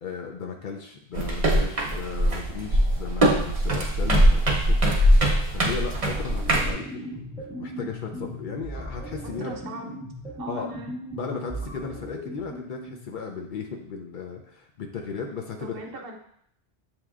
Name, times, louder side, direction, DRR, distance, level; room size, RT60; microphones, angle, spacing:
voice 1, 0.0-9.6 10.5-10.7 11.1-15.8, left 5 dB, 60° left, 1 dB, 0.6 m, -36 dB
sound 1, 1.1-6.7, right 1 dB, 35° right, 0.8 m, -21 dB
sound 2, 6.1-13.2, equal, 5° right, 1.5 m, -38 dB
voice 2, 9.4-9.9 10.4-10.9 15.6-16.2, right 3 dB, 65° right, 2 dB, 0.8 m, -39 dB
7.7 x 2.8 x 2.4 m, 0.68 s
omnidirectional pair, 1.1 m